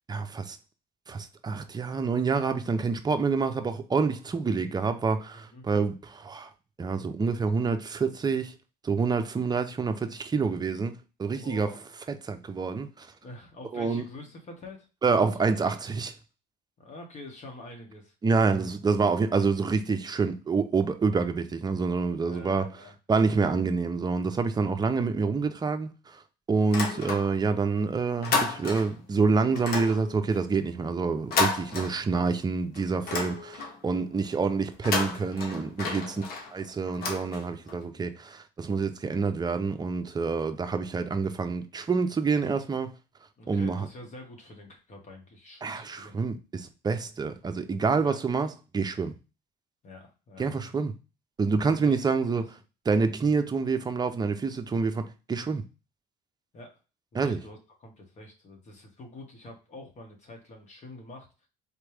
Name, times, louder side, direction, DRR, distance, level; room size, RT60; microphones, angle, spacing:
voice 1, 0.1-0.6 1.1-6.5 6.8-8.5 8.8-11.7 12.1-13.1 13.7-14.1 15.0-16.1 18.2-22.7 23.1-26.2 26.5-36.2 36.5-42.9 43.5-43.9 45.6-49.1 50.4-50.9 51.4-52.5 52.9-55.6 57.1-57.4, right 4 dB, 25° right, 0.6 m, -27 dB
voice 2, 5.3-5.6 11.4-11.8 13.2-14.9 15.2-15.4 16.8-18.1 22.3-22.9 31.9-32.2 36.0-36.5 43.4-46.2 48.0-48.1 49.8-50.7 51.7-52.0 52.3-52.5 56.5-56.8 57.1-61.5, left 2 dB, 45° left, 1.6 m, -46 dB
sound 1, 26.6-27.6 27.9-29.1 29.6-32.4 32.7-33.9 34.7-37.8, left 4 dB, 65° left, 1.3 m, -32 dB
4.3 x 3.0 x 3.3 m
cardioid pair, 110°, 17 cm